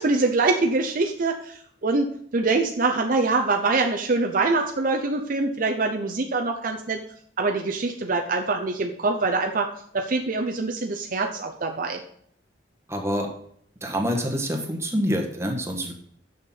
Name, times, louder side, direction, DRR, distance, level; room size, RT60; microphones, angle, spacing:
voice 1, 0.0-2.1 2.3-7.0 7.4-9.7 9.9-12.0, right 3 dB, 50° right, 3 dB, 0.7 m, -24 dB
voice 2, 12.9-13.3 13.8-15.9, equal, 15° right, 2 dB, 1.4 m, -26 dB
6.8 x 6.7 x 5.5 m, 0.64 s
head